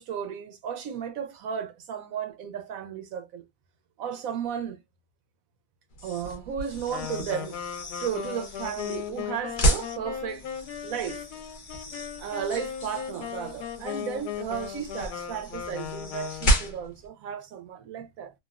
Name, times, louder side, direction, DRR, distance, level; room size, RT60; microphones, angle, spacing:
voice 1, 0.0-3.4 4.0-4.8 6.0-7.5 8.0-10.5 10.8-11.3 12.2-18.3, right 8 dB, 70° right, 0.8 m, -34 dB
sound 1, 5.9-17.1, right 1 dB, 45° left, 0.6 m, -32 dB
Wind instrument woodwind instrument, 6.9-16.8, left 9 dB, 75° left, 1.1 m, -37 dB
3.1 x 2.3 x 2.3 m
omnidirectional pair, 1.8 m